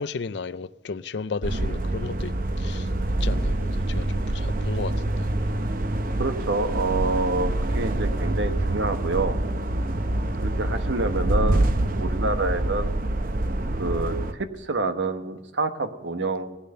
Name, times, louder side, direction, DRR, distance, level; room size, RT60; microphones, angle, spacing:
voice 1, 0.0-2.9 3.2-5.3, left 4 dB, 65° left, 0.5 m, -34 dB
sound 1, 1.4-14.3, right 1 dB, 45° right, 0.7 m, -26 dB
voice 2, 6.2-9.4 10.4-12.9 13.8-16.6, right 2 dB, 75° right, 1.2 m, -27 dB
17.0 x 10.0 x 6.7 m
head